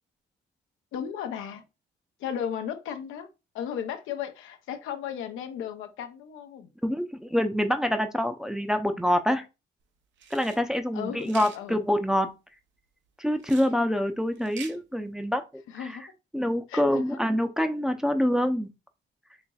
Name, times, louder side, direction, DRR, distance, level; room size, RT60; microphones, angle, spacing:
voice 1, 0.9-1.6 2.2-3.3 3.5-6.7 10.9-11.8 15.7-16.0 16.7-17.2, left 8 dB, 85° left, 0.6 m, -35 dB
voice 2, 6.8-9.4 10.3-12.4 13.2-15.4 15.7-16.0 16.3-18.7, equal, 5° right, 0.5 m, -26 dB
sound 1, 10.2-10.6 11.2-11.6 13.4-13.7 14.4-14.8, right 7 dB, 70° right, 0.6 m, -44 dB
4.1 x 2.9 x 2.3 m
cardioid pair, 90°, 20 cm